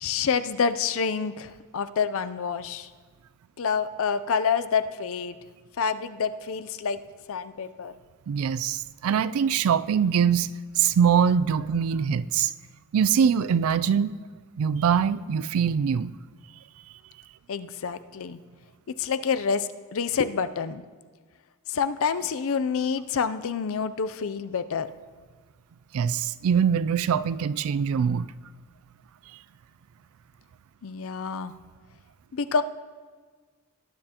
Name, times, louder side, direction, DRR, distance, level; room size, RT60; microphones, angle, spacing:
voice 1, 0.0-2.9 3.6-5.4 5.8-7.0 7.3-7.9 17.5-18.4 19.0-20.8 21.7-24.9 30.8-31.5 32.3-32.6, left 6 dB, 65° left, 12 dB, 0.5 m, -27 dB
voice 2, 8.3-10.5 10.8-12.5 12.9-14.2 14.6-16.1 25.9-28.3, right 7 dB, 65° right, 16 dB, 0.3 m, -23 dB
18.5 x 9.7 x 2.9 m, 1.5 s
head